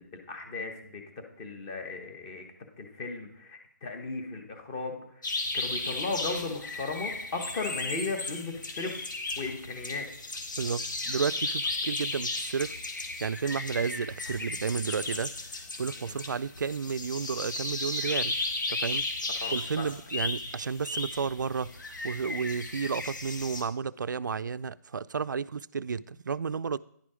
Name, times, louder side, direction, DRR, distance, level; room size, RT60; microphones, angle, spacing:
voice 1, 0.0-2.4 2.8-5.0 5.5-9.0 9.4-10.1 16.0-16.1 19.4-19.9, left 3 dB, 15° left, 0.9 m, -36 dB
sound 1, 5.2-23.6, left 2 dB, 90° left, 1.8 m, -35 dB
voice 2, 10.6-12.7 13.2-18.4 18.7-19.1 19.5-21.7 22.0-26.8, right 6 dB, 90° right, 0.4 m, -32 dB
10.5 x 5.0 x 5.0 m
hypercardioid pair, 170°, 10 cm